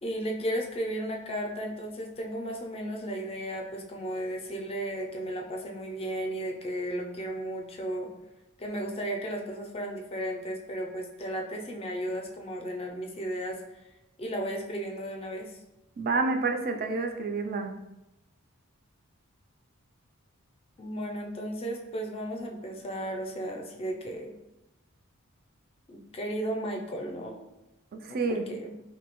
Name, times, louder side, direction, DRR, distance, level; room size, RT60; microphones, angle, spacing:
voice 1, 0.0-8.1 8.6-13.6 14.2-15.6 20.8-24.4 25.9-27.4 28.1-28.8, right 1 dB, 25° left, 1 dB, 0.4 m, -34 dB
voice 2, 16.0-17.7 27.9-28.5, right 3 dB, 45° right, 5 dB, 0.3 m, -29 dB
2.6 x 2.6 x 2.9 m, 0.93 s
head